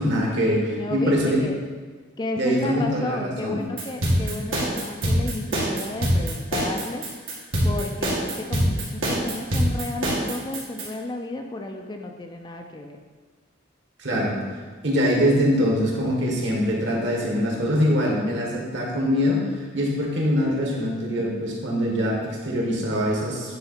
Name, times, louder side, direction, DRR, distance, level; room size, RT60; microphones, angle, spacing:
voice 1, 0.0-1.4 2.4-3.6 4.1-4.3 14.0-14.4 14.8-23.6, equal, 65° right, -2 dB, 1.7 m, -23 dB
voice 2, 0.8-1.6 2.2-7.1 7.6-13.0, left 2 dB, 20° left, 4 dB, 0.4 m, -32 dB
sound 1, 3.8-10.9, equal, 85° right, 2.0 m, -23 dB
9.4 x 3.9 x 4.3 m, 1.4 s
head